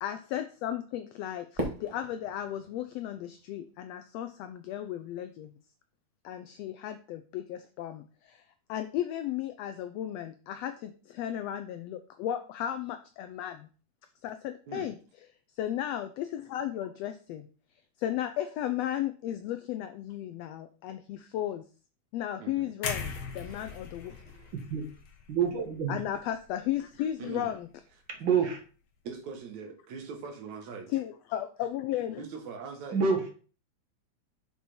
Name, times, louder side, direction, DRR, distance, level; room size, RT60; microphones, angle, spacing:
voice 1, 0.0-5.5 6.2-8.4 8.7-13.7 14.2-14.9 15.6-17.5 18.0-21.6 22.1-24.2 25.9-27.7 30.9-32.2, left 11 dB, 85° left, 1.4 m, -35 dB
Fireworks, 1.5-3.9, equal, 20° right, 1.1 m, -39 dB
sound 1, 22.8-26.8 27.2-27.4, left 6 dB, 70° left, 1.0 m, -40 dB
voice 2, 22.9-24.5 27.2-27.6 29.0-30.8 32.2-33.0, right 5 dB, 70° right, 2.7 m, -43 dB
voice 3, 25.3-26.0 28.1-28.6 32.9-33.3, right 6 dB, 55° right, 1.5 m, -27 dB
6.2 x 5.4 x 4.3 m
omnidirectional pair, 3.4 m